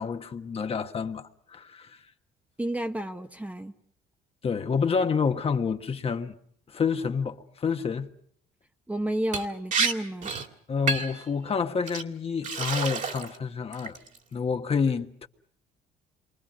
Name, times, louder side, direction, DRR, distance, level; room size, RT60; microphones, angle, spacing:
voice 1, 0.0-2.0 4.4-6.3 6.7-8.1 10.7-14.0 14.3-15.3, left 5 dB, 35° left, 1.4 m, -28 dB
voice 2, 2.6-3.7 8.9-10.3, right 1 dB, 10° right, 1.2 m, -31 dB
Liquid, 9.3-9.5 9.7-9.9 10.2-10.5 10.9-11.2 11.9-12.0 12.4-13.4 13.7-14.2, right 5 dB, 50° right, 2.6 m, -28 dB
28.0 x 24.0 x 6.3 m
cardioid pair, 110°, 17 cm